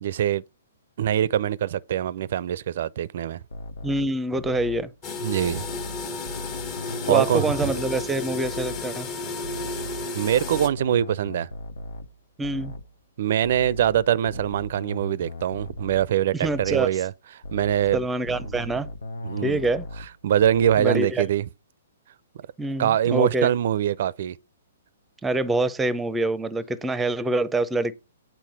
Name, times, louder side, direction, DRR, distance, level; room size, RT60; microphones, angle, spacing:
voice 1, 0.0-0.4 1.0-3.4 5.1-5.6 6.3-6.5 7.1-7.7 10.1-11.5 13.2-17.1 17.5-18.1 18.4-18.6 19.2-19.6 20.2-21.5 22.8-24.4, right 10 dB, 55° right, 0.5 m, -23 dB
sound 1, 3.5-5.0 5.4-8.2 8.4-8.9 9.4-13.0 13.4-16.2 16.4-16.9 17.4-20.2 20.4-21.0, left 1 dB, 75° left, 0.7 m, -38 dB
voice 2, 3.8-4.9 7.1-9.1 12.4-12.7 16.4-16.9 17.9-18.9 19.4-19.9 20.8-21.2 22.6-23.5 25.2-27.9, right 2 dB, 10° right, 0.7 m, -25 dB
sound 2, 5.0-10.7, left 3 dB, 35° left, 1.2 m, -33 dB
9.0 x 4.4 x 4.0 m
hypercardioid pair, 125°, 0 cm